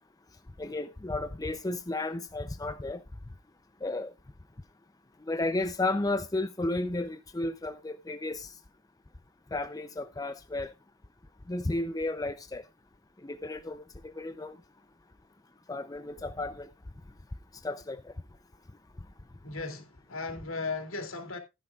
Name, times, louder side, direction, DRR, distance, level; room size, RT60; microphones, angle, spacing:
voice 1, 0.6-3.0 3.8-4.1 5.3-8.5 9.5-10.7 11.5-12.6 13.2-14.6 15.7-16.7 17.6-18.1, left 2 dB, 15° left, 0.5 m, -33 dB
voice 2, 19.4-21.4, left 3 dB, 70° left, 2.8 m, -36 dB
15.0 x 10.5 x 2.4 m
head